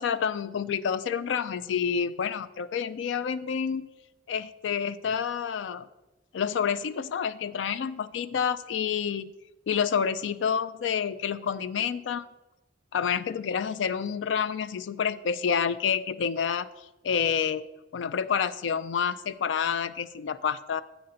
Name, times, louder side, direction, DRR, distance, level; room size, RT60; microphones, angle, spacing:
voice 1, 0.0-3.9 4.3-5.9 6.3-9.3 9.7-12.3 12.9-17.6 17.9-20.8, left 7 dB, 85° left, 15 dB, 0.4 m, -28 dB
8.5 x 5.6 x 3.8 m, 1.0 s
head